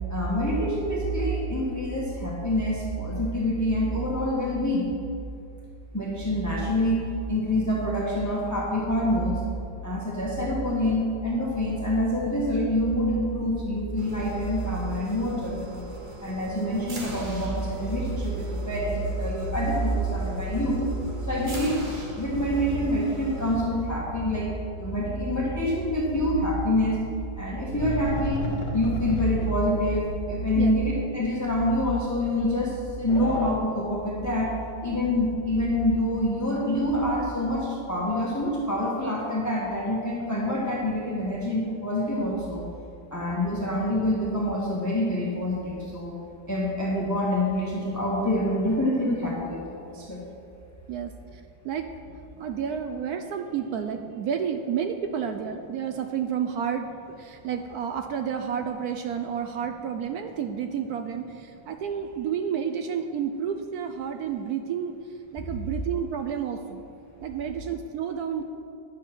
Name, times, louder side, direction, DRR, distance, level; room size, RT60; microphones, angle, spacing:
voice 1, 0.1-5.0 5.9-7.0 7.3-9.4 9.8-15.8 16.2-20.8 21.2-21.8 22.2-24.5 24.8-27.0 27.4-28.4 28.7-34.5 34.8-42.6 43.1-46.2 46.5-50.2, left 1 dB, 10° left, -4 dB, 1.1 m, -26 dB
sound 1, 14.0-23.6, right 1 dB, 35° right, 1.0 m, -41 dB
sound 2, 27.8-29.7 30.1-30.2 30.5-30.6 31.5-31.6 33.1-33.5, left 1 dB, 40° left, 1.8 m, -32 dB
voice 2, 50.9-51.9 52.4-56.9 57.2-65.0 65.3-66.8 67.2-68.4, right 8 dB, 75° right, 6 dB, 0.9 m, -30 dB
9.9 x 7.3 x 6.0 m, 2.7 s
omnidirectional pair, 2.0 m